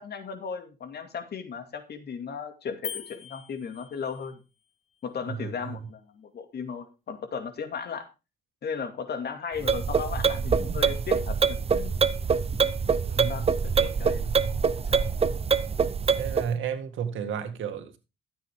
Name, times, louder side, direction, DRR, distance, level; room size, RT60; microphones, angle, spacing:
voice 1, 0.0-4.4 5.0-8.1 8.6-12.0 13.1-15.0, left 6 dB, 55° left, 2.3 m, -36 dB
sound 1, 2.8-4.4, left 8 dB, 35° left, 0.6 m, -40 dB
voice 2, 5.3-5.8 13.0-13.9 16.1-18.0, right 7 dB, 75° right, 1.9 m, -33 dB
sound 2, 9.6-16.5, right 5 dB, 30° right, 0.7 m, -25 dB
13.0 x 8.1 x 3.7 m
cardioid pair, 90°, 20 cm